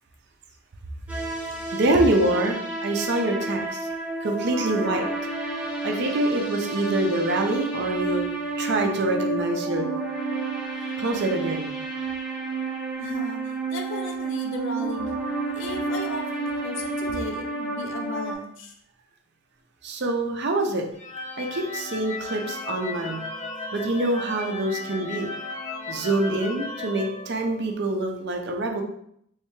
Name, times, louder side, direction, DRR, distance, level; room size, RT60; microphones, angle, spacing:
sound 1, 1.1-18.3, right 3 dB, 5° right, 0.8 m, -30 dB
voice 1, 1.7-3.9 4.2-5.0 5.8-8.3 8.6-9.8 11.0-11.8 19.8-20.8 21.4-23.2 23.7-25.3 25.9-28.8, right 2 dB, 50° right, 3 dB, 0.5 m, -25 dB
voice 2, 13.0-15.2 15.5-18.7, left 2 dB, 60° left, 3 dB, 0.6 m, -35 dB
sound 2, 20.9-27.9, left 3 dB, 30° left, 0.9 m, -35 dB
3.3 x 3.2 x 3.1 m, 0.72 s
head